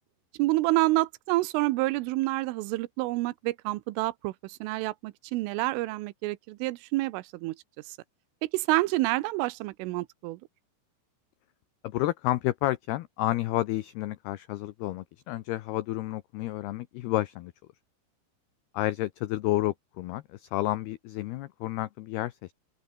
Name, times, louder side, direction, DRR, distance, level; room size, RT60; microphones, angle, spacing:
voice 1, 0.4-7.6 8.5-10.4, right 19 dB, 90° right, 3.4 m, -28 dB
voice 2, 11.8-17.5 18.7-22.5, left 16 dB, 80° left, 2.4 m, -30 dB
open air
omnidirectional pair, 5.6 m